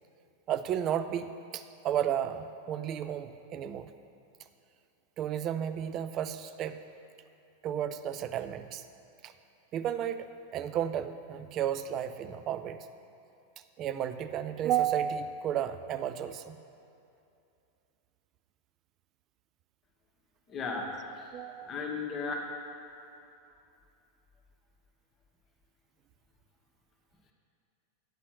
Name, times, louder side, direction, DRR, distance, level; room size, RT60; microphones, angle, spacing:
voice 1, 0.5-3.9 5.2-6.8 7.6-8.9 9.7-12.9 13.8-16.6 21.3-21.7, right 10 dB, 35° right, 10 dB, 0.4 m, -33 dB
voice 2, 20.5-22.5, left 4 dB, 25° left, 1 dB, 1.1 m, -36 dB
9.6 x 4.1 x 6.2 m, 2.7 s
figure-of-eight pair, 90°, 0 cm